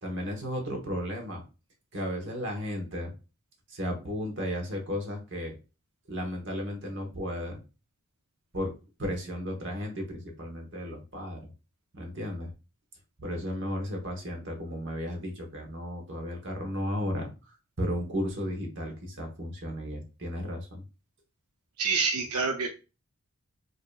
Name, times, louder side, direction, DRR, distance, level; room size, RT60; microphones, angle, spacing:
voice 1, 0.0-1.4 1.9-3.1 3.7-5.6 6.1-7.6 8.5-8.7 9.0-11.5 11.9-12.5 13.2-20.8, equal, 55° right, 2 dB, 1.1 m, -34 dB
voice 2, 21.8-22.7, right 4 dB, 85° right, 3 dB, 0.6 m, -27 dB
5.2 x 2.8 x 2.3 m, 0.30 s
head